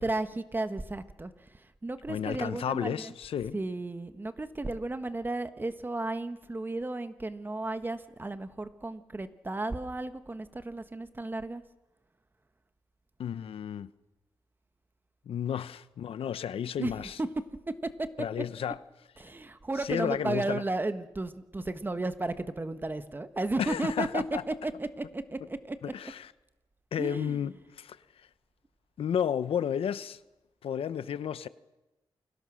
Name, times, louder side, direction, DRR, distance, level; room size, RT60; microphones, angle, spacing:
voice 1, 0.0-3.1 3.5-11.6 16.8-16.9 17.2-17.3 18.0-18.1 19.2-25.8 27.0-27.4, right 2 dB, 20° right, 1.4 m, -34 dB
voice 2, 2.1-3.6 13.2-13.9 15.3-17.2 18.2-18.8 19.8-20.6 23.6-24.4 25.8-26.3 26.9-28.3 29.0-30.2 30.6-31.5, left 8 dB, 90° left, 0.9 m, -32 dB
29.0 x 22.5 x 6.4 m
wide cardioid pair, 110°, 9 cm